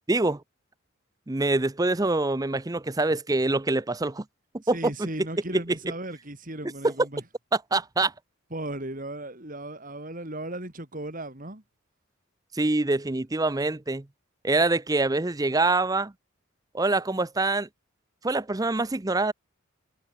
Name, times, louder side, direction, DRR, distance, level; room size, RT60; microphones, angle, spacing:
voice 1, 0.1-0.4 1.3-4.2 4.5-5.1 7.7-8.1 12.5-14.0 14.4-16.1 16.7-17.7 18.2-19.3, right 2 dB, 15° right, 0.6 m, -25 dB
voice 2, 4.7-7.2 8.5-11.6, right 1 dB, 40° right, 3.7 m, -36 dB
head